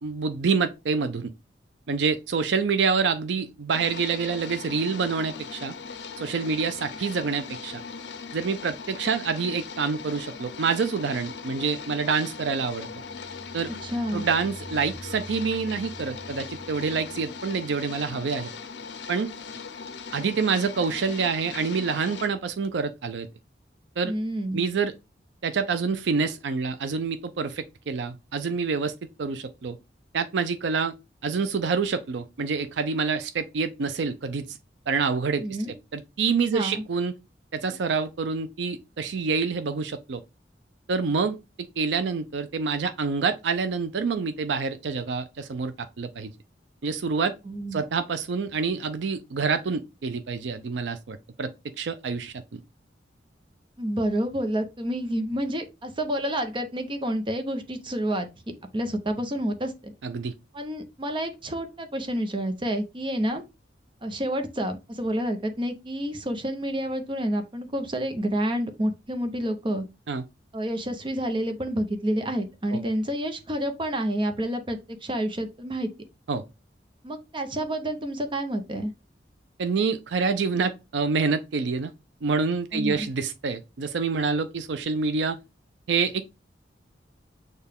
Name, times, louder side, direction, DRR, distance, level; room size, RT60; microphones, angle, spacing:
voice 1, 0.0-1.3 1.9-5.7 6.2-7.8 8.3-12.9 13.5-13.7 14.1-18.5 19.1-19.3 20.1-23.3 24.0-24.1 24.5-24.9 25.4-29.8 30.1-30.9 31.2-34.6 34.9-35.4 35.9-37.1 37.5-40.2 40.9-46.3 46.8-47.3 47.7-51.5 51.8-52.6 60.0-60.3 70.1-70.2 72.7-72.8 76.3-76.4 79.6-81.9 82.2-85.4 85.9-86.2, right 5 dB, 85° right, 0.5 m, -27 dB
sound 1, 3.7-22.3, left 5 dB, 75° left, 0.6 m, -39 dB
sound 2, 12.3-18.0, right 1 dB, 20° left, 1.8 m, -46 dB
voice 2, 13.7-14.3 24.0-24.6 35.4-35.7 36.5-36.8 47.5-47.8 53.8-58.3 58.7-59.9 60.5-63.4 64.0-69.8 70.5-75.9 77.0-78.9 82.7-83.1, right 1 dB, 30° right, 0.7 m, -29 dB
6.6 x 2.3 x 3.4 m
head